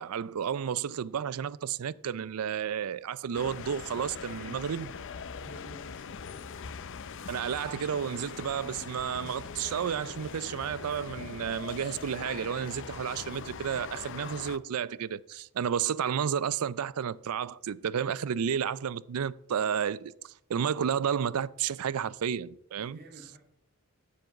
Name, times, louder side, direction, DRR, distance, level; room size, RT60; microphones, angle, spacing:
voice 1, 0.0-4.9 7.3-20.1 20.5-23.0, right 8 dB, 75° right, 0.4 m, -31 dB
sound 1, 3.3-14.6, left 6 dB, 60° left, 0.5 m, -42 dB
voice 2, 5.4-6.5 22.8-23.4, right 1 dB, 45° right, 2.3 m, -52 dB
7.6 x 7.3 x 7.8 m
head